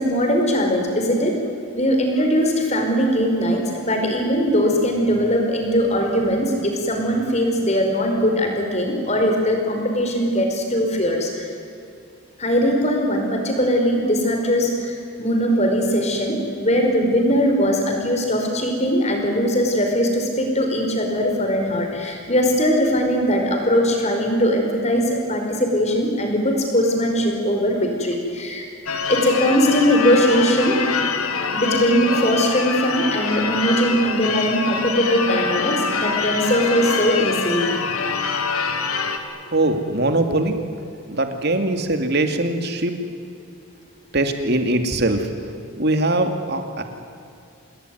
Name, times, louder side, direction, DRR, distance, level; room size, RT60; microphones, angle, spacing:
voice 1, 0.0-1.3 1.7-11.5 12.4-28.7 29.1-30.8 31.5-37.7, equal, 30° left, 2 dB, 5.2 m, -20 dB
Church bell / Car / Alarm, 28.9-39.2, left 5 dB, 90° left, 2.5 m, -25 dB
voice 2, 39.5-40.6 41.1-42.9 44.1-45.3 45.7-46.8, right 2 dB, 50° right, 6 dB, 2.5 m, -21 dB
27.5 x 20.5 x 9.6 m, 2.6 s
head